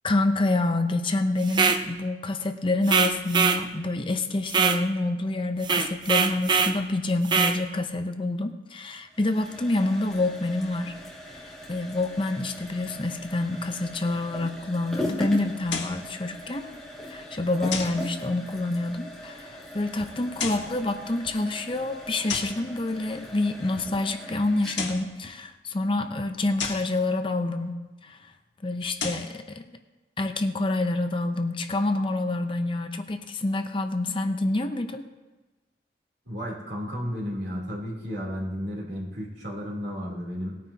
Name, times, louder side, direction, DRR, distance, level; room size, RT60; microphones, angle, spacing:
voice 1, 0.0-10.9 11.4-16.7 17.1-28.2 28.6-29.8 30.2-35.1, left 2 dB, 30° left, 7 dB, 0.6 m, -27 dB
sound 1, 1.5-1.8 2.9-3.6 4.5-4.8 5.6-6.8 7.3-7.6, right 5 dB, 25° right, 0.6 m, -22 dB
sound 2, 9.1-26.8, left 1 dB, 5° left, 2.1 m, -40 dB
sound 3, 15.7-16.1 17.7-18.1 20.2-20.8 22.3-22.6 24.6-25.1 26.6-26.9 28.8-29.3, left 5 dB, 90° left, 1.6 m, -32 dB
voice 2, 36.2-40.6, equal, 70° right, -3 dB, 3.2 m, -33 dB
19.0 x 9.3 x 2.8 m, 1.2 s
head